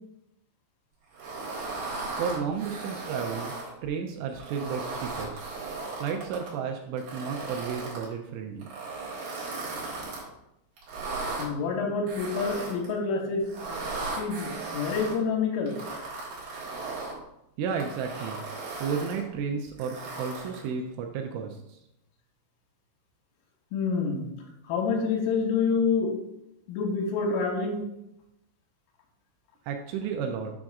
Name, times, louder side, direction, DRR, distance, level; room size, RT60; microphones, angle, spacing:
sound 1, 1.1-3.7 4.3-6.5 7.0-8.1 8.6-10.2 10.8-11.5 12.1-12.9 13.4-15.1 15.7-17.2 17.7-19.2 19.8-20.7, right 3 dB, 60° right, 2.9 m, -36 dB
voice 1, 2.2-3.5 3.8-5.4 6.0-8.7 17.6-18.4 18.8-21.8 29.7-30.5, right 6 dB, 85° right, 3 dB, 2.8 m, -32 dB
voice 2, 11.4-13.4 14.2-15.8 23.7-24.3 24.6-26.2 26.7-27.8, left 5 dB, 80° left, 0 dB, 3.2 m, -27 dB
7.5 x 6.1 x 2.4 m, 0.83 s
omnidirectional pair, 5.8 m